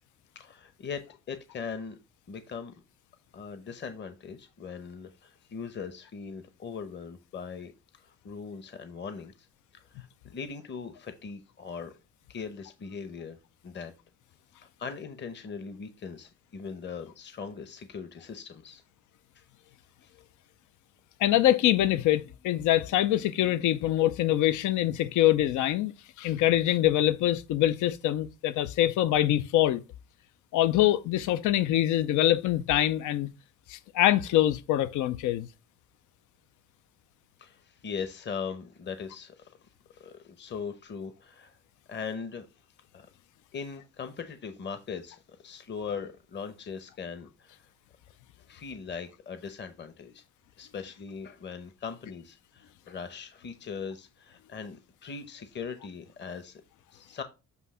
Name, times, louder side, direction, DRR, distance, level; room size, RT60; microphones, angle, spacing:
voice 1, 0.3-1.0 1.3-2.0 2.3-2.7 3.3-7.7 8.2-9.3 9.9-11.9 12.3-13.4 13.6-13.9 14.8-18.8 37.4-39.5 40.0-41.5 41.9-42.5 42.9-43.1 43.5-47.5 48.5-50.2 50.6-56.6 56.9-57.2, left 6 dB, 40° left, 0.9 m, -40 dB
voice 2, 21.2-25.9 26.2-29.8 30.5-33.3 33.7-35.5, left 13 dB, 80° left, 0.6 m, -24 dB
8.1 x 2.8 x 5.5 m
cardioid pair, 95°, 29 cm